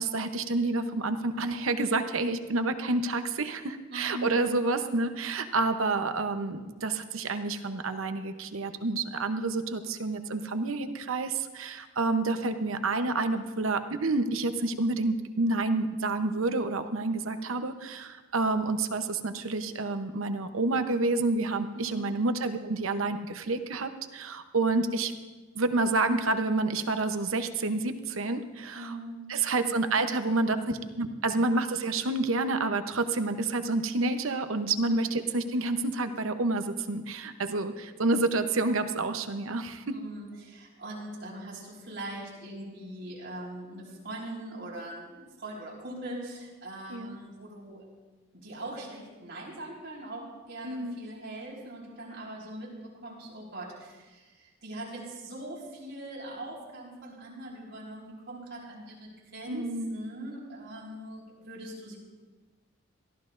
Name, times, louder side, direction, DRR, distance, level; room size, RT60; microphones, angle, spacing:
voice 1, 0.0-25.1 25.5-28.9 29.3-30.6 31.0-40.0 46.9-47.2 50.6-51.0 59.5-60.0, right 3 dB, 80° right, 8 dB, 0.9 m, -29 dB
voice 2, 3.9-4.4 5.0-5.2 21.7-22.0 28.7-29.2 29.6-29.7 30.5-30.9 39.9-47.9 48.3-62.0, right 1 dB, 55° right, -3 dB, 4.4 m, -41 dB
22.0 x 14.5 x 2.6 m, 1.3 s
head